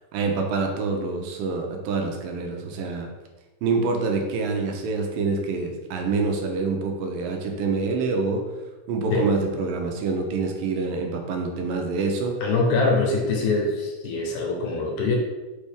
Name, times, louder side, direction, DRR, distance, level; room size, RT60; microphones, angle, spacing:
voice 1, 0.1-3.1 3.6-8.5 8.9-12.4, right 4 dB, 85° right, 3 dB, 2.5 m, -26 dB
voice 2, 12.4-15.2, left 3 dB, 70° left, 0 dB, 2.1 m, -23 dB
5.4 x 5.3 x 3.4 m, 1.2 s
omnidirectional pair, 4.0 m